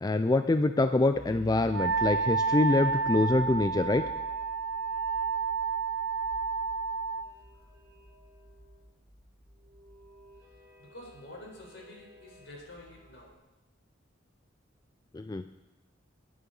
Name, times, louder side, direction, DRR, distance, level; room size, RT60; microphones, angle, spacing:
voice 1, 0.0-4.0 15.1-15.4, left 2 dB, 20° left, 9 dB, 0.4 m, -25 dB
sound 1, 1.1-13.4, equal, 40° right, 3.2 m, -52 dB
Wind instrument woodwind instrument, 1.7-7.3, right 4 dB, 85° right, 1.0 m, -30 dB
voice 2, 10.8-13.3, left 1 dB, 65° left, -1 dB, 4.3 m, -48 dB
21.0 x 9.5 x 3.9 m, 1.0 s
head